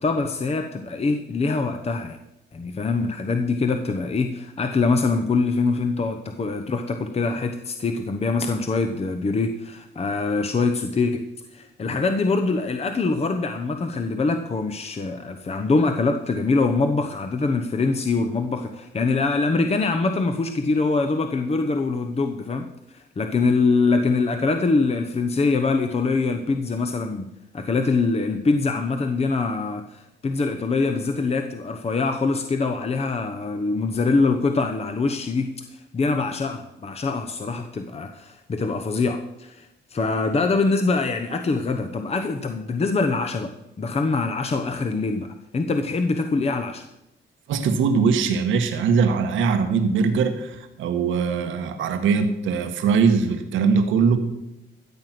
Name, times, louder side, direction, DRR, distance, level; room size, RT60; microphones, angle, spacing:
voice 1, 0.0-2.2 2.5-11.2 11.5-22.7 22.9-27.3 27.5-43.5 43.8-45.3 45.5-46.8, left 3 dB, 30° left, 6 dB, 1.0 m, -24 dB
voice 2, 47.5-54.2, right 5 dB, 85° right, 6 dB, 1.4 m, -21 dB
14.5 x 7.7 x 6.0 m, 0.91 s
cardioid pair, 90°, 20 cm